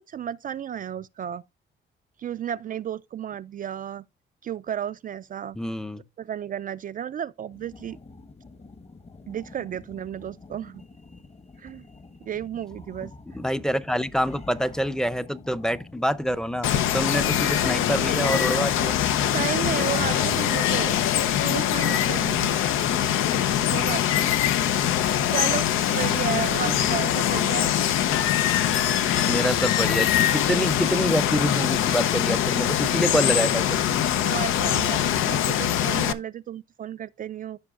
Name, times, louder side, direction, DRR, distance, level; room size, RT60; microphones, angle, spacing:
voice 1, 0.1-1.4 2.2-4.0 4.4-5.6 6.2-8.0 9.3-10.8 11.6-11.8 12.2-13.1 17.6-17.9 19.3-21.0 21.4-22.5 23.5-24.3 25.3-27.7 34.2-37.6, right 9 dB, 45° right, 0.4 m, -33 dB
voice 2, 5.6-6.0 13.0-19.0 26.6-26.8 29.3-33.8, equal, 5° left, 0.6 m, -26 dB
sound 1, 7.5-20.5, left 3 dB, 30° left, 1.2 m, -44 dB
Water, 16.6-36.1, left 10 dB, 90° left, 0.7 m, -23 dB
sound 2, 29.1-34.4, left 7 dB, 55° left, 0.9 m, -43 dB
14.5 x 5.3 x 2.4 m
cardioid pair, 90°, 20 cm